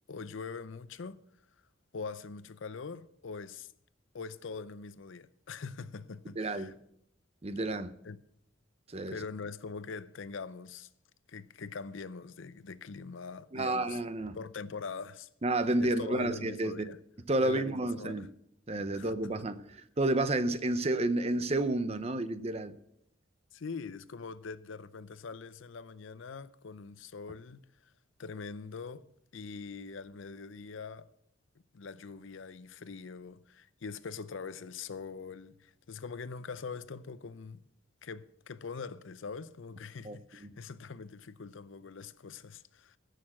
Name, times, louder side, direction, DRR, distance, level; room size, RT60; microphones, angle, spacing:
voice 1, 0.1-1.2 1.9-3.7 4.1-6.7 8.0-8.2 9.1-10.9 11.3-14.0 14.3-15.3 15.8-17.0 17.4-18.3 18.9-19.3 23.5-27.9 28.2-29.0 29.3-31.1 31.7-37.7 38.0-43.0, left 5 dB, 70° left, 0.6 m, -43 dB
voice 2, 6.4-6.7 7.4-7.9 8.9-9.2 13.5-14.4 15.4-16.9 17.3-18.3 18.7-22.8 40.0-40.5, right 2 dB, 30° right, 0.6 m, -31 dB
15.5 x 6.6 x 6.3 m
head